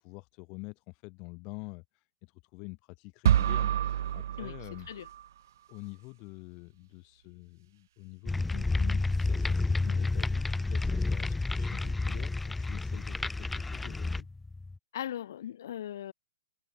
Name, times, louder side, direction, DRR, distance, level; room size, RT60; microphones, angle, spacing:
voice 1, 0.0-4.9 5.7-14.3, left 30 dB, 25° left, 3.0 m, -47 dB
sound 1, 3.3-5.3, right 11 dB, 50° right, 0.4 m, -28 dB
sound 2, 8.3-14.8, left 3 dB, 5° left, 0.9 m, -30 dB
voice 2, 14.9-16.1, left 11 dB, 50° left, 5.3 m, -38 dB
hypercardioid pair, 170°, 2 cm